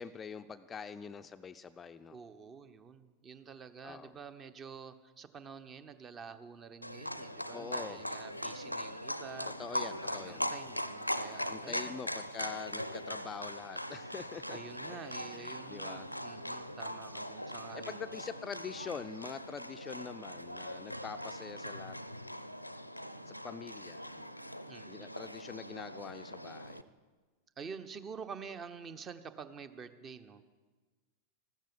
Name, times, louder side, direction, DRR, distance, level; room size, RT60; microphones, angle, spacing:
voice 1, 0.0-2.2 3.8-4.2 7.5-8.0 9.6-10.5 11.5-14.6 14.9-16.1 17.7-22.0 23.3-24.3 24.9-26.9, left 6 dB, 20° left, 11 dB, 0.5 m, -45 dB
voice 2, 2.1-9.5 10.0-11.9 14.5-18.1 24.7-25.1 27.6-30.6, right 6 dB, 25° right, 12 dB, 1.0 m, -48 dB
Livestock farm animals working animals, 6.8-26.8, equal, 90° left, 0.6 m, -41 dB
14.5 x 13.5 x 7.1 m, 1.4 s
figure-of-eight pair, 90°, 0 cm